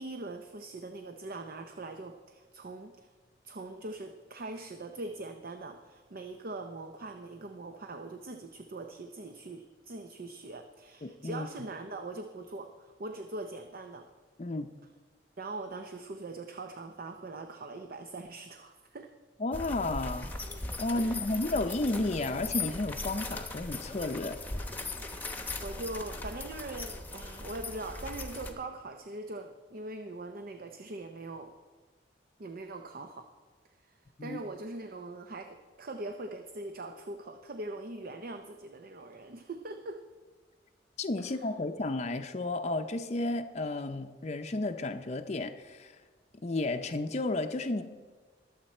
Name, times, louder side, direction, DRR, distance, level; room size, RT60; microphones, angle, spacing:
voice 1, 0.0-3.1 3.4-14.0 15.4-19.1 20.9-21.3 25.3-31.5 32.4-33.3 33.8-40.0 41.2-41.3, right 2 dB, 55° right, 6 dB, 0.6 m, -42 dB
voice 2, 11.0-11.5 14.4-14.7 19.4-20.3 20.8-24.4 34.2-34.4 41.0-46.0 46.4-47.8, left 2 dB, 40° left, 6 dB, 0.6 m, -32 dB
sound 1, 19.5-28.5, left 3 dB, 10° left, 1.0 m, -39 dB
21.0 x 7.4 x 4.3 m, 1.4 s
head